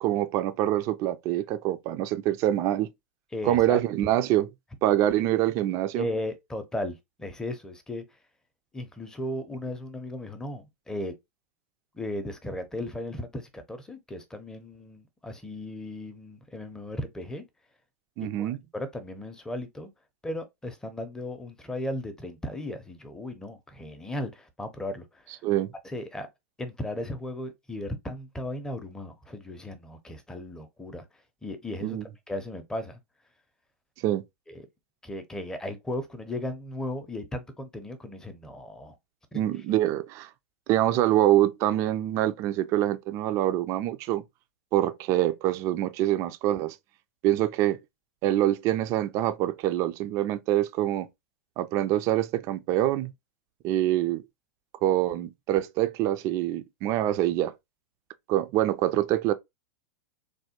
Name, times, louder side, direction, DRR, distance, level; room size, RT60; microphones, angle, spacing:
voice 1, 0.0-2.9 3.4-4.5 4.8-6.1 18.2-18.6 25.4-25.7 31.8-32.0 34.0-34.2 39.3-40.3 40.7-44.2 44.7-46.8 47.2-47.8 48.2-51.1 51.6-53.1 53.6-54.2 54.8-57.5 58.3-59.3, right 13 dB, 40° right, 0.4 m, -25 dB
voice 2, 3.3-3.8 6.0-8.0 8.7-11.1 11.9-17.4 18.2-19.9 20.2-25.4 25.8-26.3 26.6-31.1 31.4-32.0 32.3-33.0 34.5-34.6 35.0-38.9 39.3-39.4, left 1 dB, 10° left, 0.6 m, -36 dB
3.3 x 2.2 x 2.8 m
figure-of-eight pair, 95°, 8 cm